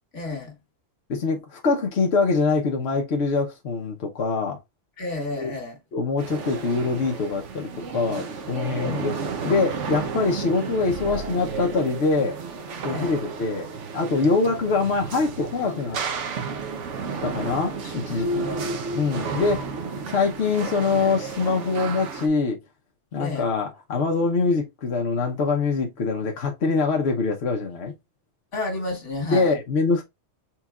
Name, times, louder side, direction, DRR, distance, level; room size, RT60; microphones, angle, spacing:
voice 1, 0.1-0.6 5.0-5.8 8.8-9.2 12.9-13.2 17.8-18.7 23.2-23.5 28.5-29.6, left 2 dB, 85° left, 1.9 m, -32 dB
voice 2, 1.1-4.6 5.4-5.5 5.9-9.1 9.4-12.4 12.8-13.7 13.9-16.0 17.2-18.5 18.9-19.7 20.1-22.6 23.1-27.9 29.3-30.0, left 4 dB, 65° left, 1.1 m, -24 dB
sound 1, 6.2-22.3, right 4 dB, 85° right, 1.1 m, -32 dB
4.4 x 4.0 x 2.4 m
omnidirectional pair, 1.2 m